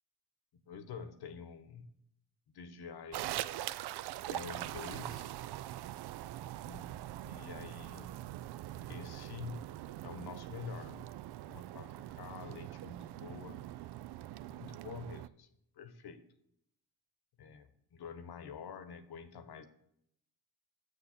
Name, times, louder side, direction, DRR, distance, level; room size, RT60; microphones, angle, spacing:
voice 1, 0.7-1.9 2.5-3.3 4.3-5.4 6.7-6.9 7.2-8.1 8.9-9.7 10.0-11.1 11.5-13.6 14.5-15.5 15.8-16.2 17.4-19.7, left 5 dB, 55° left, 11 dB, 1.1 m, -47 dB
sound 1, 3.1-15.3, right 14 dB, 60° right, 0.5 m, -43 dB
7.1 x 6.6 x 5.7 m, 0.74 s
hypercardioid pair, 45°, 45 cm